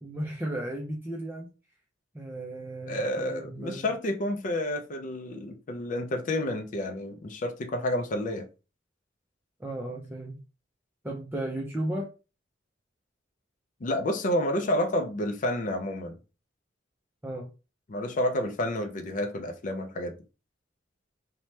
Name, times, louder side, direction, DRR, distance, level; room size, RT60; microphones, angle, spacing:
voice 1, 0.0-1.5 2.1-3.9 9.6-10.4 11.0-12.1 17.2-17.5, right 1 dB, 10° right, 0.5 m, -35 dB
voice 2, 2.9-8.5 13.8-16.1 17.9-20.1, left 1 dB, 45° left, 0.4 m, -30 dB
2.8 x 2.2 x 3.1 m
head